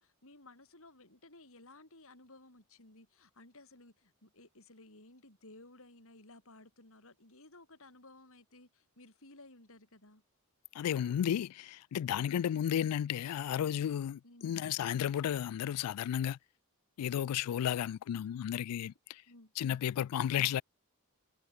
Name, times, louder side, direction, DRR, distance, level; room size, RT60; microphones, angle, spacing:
voice 1, 0.0-10.2 14.2-14.5 19.3-19.5, left 2 dB, 65° left, 7.2 m, -57 dB
voice 2, 10.7-16.4 17.0-19.2 19.6-20.6, left 10 dB, 80° left, 0.3 m, -33 dB
head